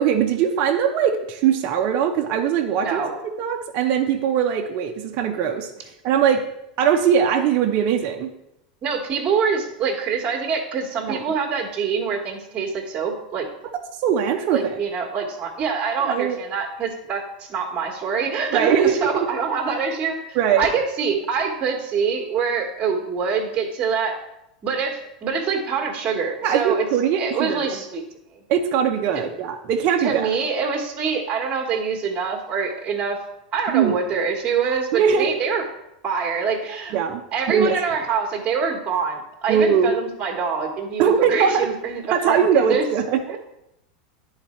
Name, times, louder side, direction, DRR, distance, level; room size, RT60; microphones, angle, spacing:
voice 1, 0.0-3.0 3.4-5.7 6.0-6.4 6.8-8.3 11.1-11.2 14.0-14.6 16.1-16.4 18.5-19.2 20.4-20.7 26.4-27.6 28.5-30.3 33.7-34.0 34.9-35.3 36.9-37.2 37.5-37.7 39.5-39.9 41.0-41.7 42.1-43.2, right 8 dB, 50° right, 3 dB, 0.7 m, -20 dB
voice 2, 2.8-3.1 8.8-13.5 14.5-24.2 24.6-26.9 27.2-28.0 30.0-33.2 33.5-35.6 36.0-37.0 37.3-42.9 43.3-43.4, right 5 dB, 30° right, 0 dB, 1.4 m, -25 dB
10.0 x 4.0 x 4.3 m, 0.83 s
hypercardioid pair, 110°, 4 cm